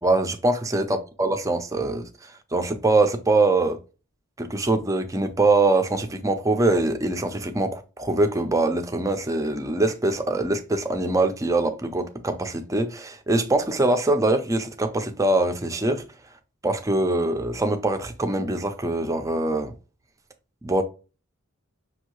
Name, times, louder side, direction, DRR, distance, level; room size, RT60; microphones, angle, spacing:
voice 1, 0.0-3.8 4.4-16.0 16.6-19.7 20.6-20.8, right 2 dB, 15° right, 0.5 m, -23 dB
6.1 x 2.7 x 3.0 m
head